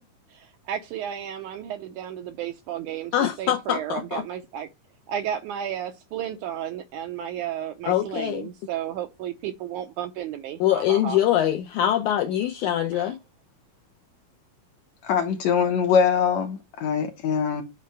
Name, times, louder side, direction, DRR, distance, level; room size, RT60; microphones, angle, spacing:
voice 1, 0.3-4.7 5.1-11.2 12.9-13.2, right 10 dB, 80° right, 1.9 m, -33 dB
voice 2, 3.1-4.2 7.9-8.5 10.6-13.2, left 11 dB, 80° left, 1.7 m, -23 dB
voice 3, 15.0-17.6, left 7 dB, 65° left, 2.1 m, -22 dB
8.4 x 4.3 x 3.3 m
omnidirectional pair, 4.0 m